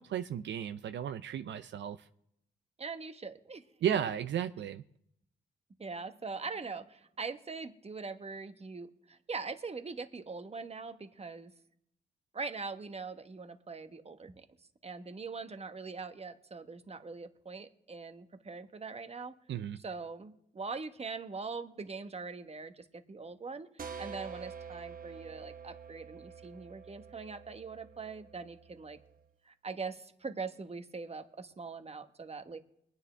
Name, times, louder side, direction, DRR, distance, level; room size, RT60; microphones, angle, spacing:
voice 1, 0.0-2.1 3.8-4.8 19.5-19.8, right 9 dB, 70° right, 0.5 m, -34 dB
voice 2, 2.8-3.6 3.9-4.0 5.8-11.5 12.3-14.4 14.8-19.3 19.8-29.0 29.4-32.6, right 4 dB, 30° right, 1.2 m, -42 dB
sound 1, 23.8-29.2, right 6 dB, 45° right, 0.9 m, -47 dB
21.5 x 9.7 x 3.4 m
cardioid pair, 65°, 19 cm